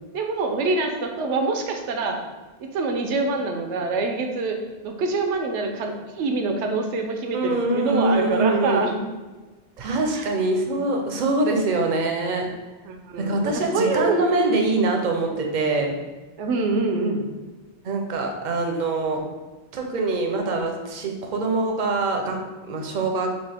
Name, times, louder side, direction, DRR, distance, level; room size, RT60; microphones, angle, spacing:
voice 1, 0.1-2.2 2.7-4.6 4.8-9.0 10.1-10.3 12.8-14.6 16.4-17.2, right 3 dB, 85° right, 4 dB, 0.9 m, -25 dB
voice 2, 7.3-8.8 9.8-12.4 13.2-16.0 17.8-19.2 19.7-23.3, right 2 dB, 50° right, 3 dB, 0.6 m, -24 dB
5.5 x 2.4 x 3.4 m, 1.2 s
omnidirectional pair, 1.2 m